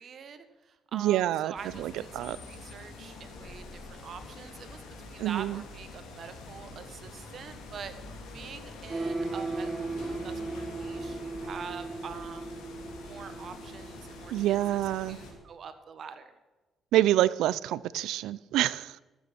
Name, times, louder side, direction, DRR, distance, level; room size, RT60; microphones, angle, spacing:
voice 1, 0.0-12.5 13.0-16.3, right 6 dB, 60° right, 10 dB, 1.4 m, -45 dB
voice 2, 0.9-1.5 1.8-2.4 5.2-5.6 14.3-15.2 16.9-19.0, right 14 dB, 85° right, 20 dB, 0.4 m, -27 dB
sound 1, 1.5-15.3, left 3 dB, 80° left, 3.1 m, -46 dB
sound 2, 8.9-14.7, right 3 dB, 30° right, 0.7 m, -37 dB
14.0 x 9.3 x 6.0 m, 1.2 s
cardioid pair, 75°, 0 cm